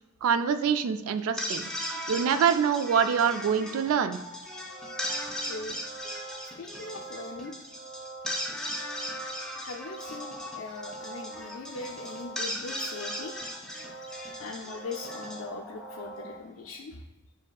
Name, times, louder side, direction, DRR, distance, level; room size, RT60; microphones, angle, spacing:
voice 1, 0.2-1.7 2.1-4.2, right 7 dB, 90° right, 14 dB, 0.3 m, -25 dB
sound 1, 1.2-16.4, equal, 5° left, 0.4 m, -38 dB
sound 2, 3.8-4.7 9.3-9.5 10.2-11.4, right 1 dB, 25° right, 1.2 m, -48 dB
sound 3, 4.6-16.4, right 3 dB, 50° right, 0.8 m, -45 dB
voice 2, 5.4-5.8 6.4-7.5 9.5-13.3 14.3-17.1, left 3 dB, 70° left, 0 dB, 0.4 m, -40 dB
7.2 x 2.7 x 2.3 m, 1.0 s
head